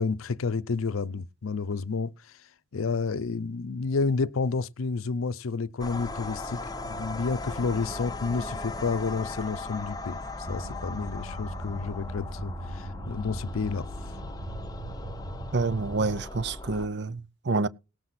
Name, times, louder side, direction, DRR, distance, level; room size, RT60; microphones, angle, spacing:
voice 1, 0.0-2.1 2.7-10.2 10.5-13.9, left 4 dB, 85° left, 0.6 m, -30 dB
sound 1, 5.8-16.9, left 2 dB, 20° left, 0.7 m, -38 dB
sound 2, 10.4-16.2, right 1 dB, 85° right, 1.2 m, -40 dB
voice 2, 15.5-17.7, right 3 dB, 55° right, 0.6 m, -28 dB
18.0 x 7.7 x 4.1 m
head